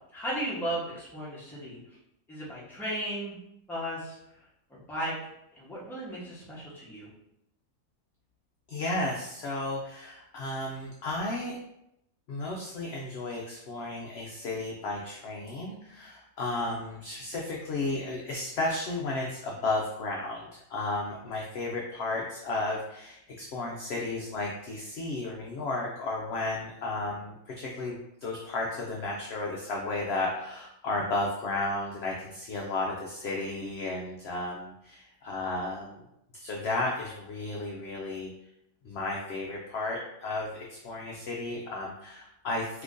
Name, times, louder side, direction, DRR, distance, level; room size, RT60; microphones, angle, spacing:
voice 1, 0.1-1.8 2.3-3.4 3.7-4.4 4.7-5.1 5.6-7.1, right 1 dB, ahead, -8 dB, 0.6 m, -35 dB
voice 2, 8.7-11.6 12.3-36.0 36.3-38.3 38.8-42.8, left 2 dB, 70° left, -2 dB, 0.6 m, -33 dB
2.9 x 2.5 x 3.5 m, 0.82 s
omnidirectional pair, 1.5 m